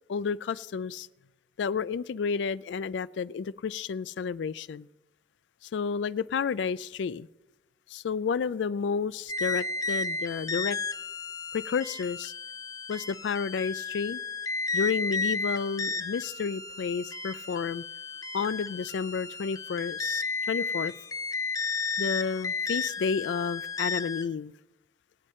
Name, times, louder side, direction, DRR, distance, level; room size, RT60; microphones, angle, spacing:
voice 1, 0.1-1.1 1.6-4.9 5.7-7.3 7.9-10.8 11.5-12.3 12.9-14.2 14.7-17.8 18.3-20.9 22.0-24.5, left 6 dB, 80° left, 0.4 m, -31 dB
sound 1, 9.3-24.3, left 4 dB, 20° left, 0.5 m, -33 dB
24.0 x 8.2 x 4.3 m
head